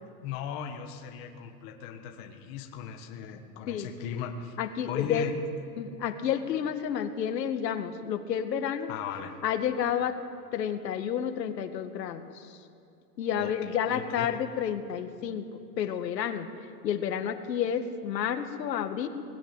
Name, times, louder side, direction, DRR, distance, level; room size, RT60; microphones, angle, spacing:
voice 1, 0.2-4.6 4.9-5.4 8.9-9.4 13.3-14.3, left 8 dB, 25° left, 3 dB, 1.5 m, -38 dB
voice 2, 4.6-5.3 5.8-8.9 9.4-10.2 10.5-12.3 13.2-16.5 16.8-19.1, left 8 dB, 80° left, 7 dB, 2.1 m, -30 dB
20.5 x 19.5 x 9.1 m, 2.6 s
supercardioid pair, 170°, 49 cm